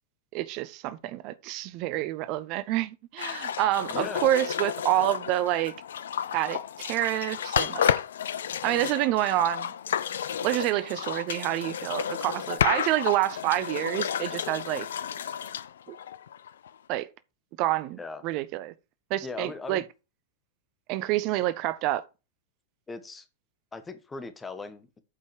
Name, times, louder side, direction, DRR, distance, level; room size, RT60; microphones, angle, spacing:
voice 1, 0.3-5.8 6.3-7.9 8.6-9.7 10.4-14.9 15.9-16.0 16.9-17.1 17.6-18.7 19.1-19.8 20.9-22.0, right 15 dB, 40° right, 0.7 m, -28 dB
sound 1, 3.2-16.7, left 9 dB, 65° left, 0.5 m, -31 dB
voice 2, 3.9-4.3 18.0-18.2 19.2-19.9 22.9-23.3 23.7-25.0, left 3 dB, 15° left, 1.4 m, -39 dB
8.5 x 5.3 x 4.8 m
figure-of-eight pair, 90°, 0 cm